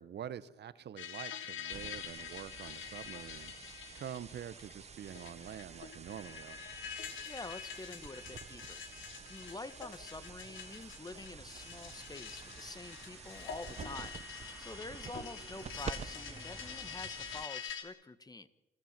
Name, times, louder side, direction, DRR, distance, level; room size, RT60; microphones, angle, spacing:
voice 1, 0.0-3.5 3.9-6.6, right 9 dB, 60° right, 1.0 m, -46 dB
sound 1, 1.0-17.8, left 8 dB, 75° left, 2.8 m, -46 dB
sound 2, 1.7-17.7, right 6 dB, 35° right, 0.6 m, -49 dB
voice 2, 7.2-8.8 9.3-14.2 14.6-18.5, left 2 dB, 20° left, 1.3 m, -47 dB
sound 3, 10.6-17.0, equal, 10° right, 2.3 m, -58 dB
28.0 x 14.0 x 7.4 m
cardioid pair, 90°, 20 cm